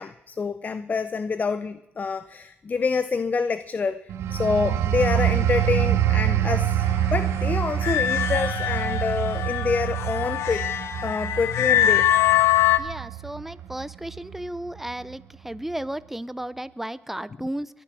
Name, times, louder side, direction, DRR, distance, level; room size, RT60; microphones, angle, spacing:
voice 1, 0.0-4.0 4.3-10.6 11.0-12.1, left 5 dB, 40° left, 13 dB, 0.7 m, -27 dB
sound 1, 4.1-14.5 14.9-15.1, right 11 dB, 85° right, 1.0 m, -26 dB
sound 2, 7.8-12.8, left 12 dB, 90° left, 0.9 m, -23 dB
voice 2, 12.8-17.7, right 1 dB, 5° right, 17 dB, 0.7 m, -34 dB
22.0 x 10.0 x 6.2 m, 0.95 s
cardioid pair, 75°, 4 cm